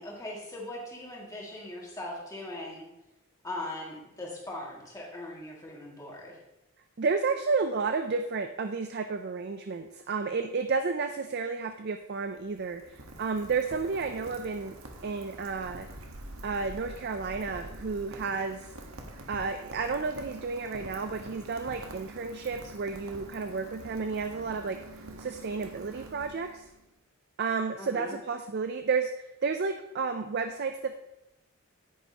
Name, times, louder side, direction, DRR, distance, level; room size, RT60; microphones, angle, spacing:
voice 1, 0.0-2.8 3.4-6.3 27.8-28.1, left 1 dB, 15° left, -3 dB, 2.1 m, -40 dB
voice 2, 7.0-14.8 15.0-15.9 16.4-18.7 19.3-24.8 25.2-26.7 27.4-30.9, right 4 dB, 45° right, 7 dB, 0.4 m, -31 dB
Rain, 12.0-26.8, right 2 dB, 70° right, 1.3 m, -46 dB
10.0 x 9.4 x 2.9 m, 0.92 s
head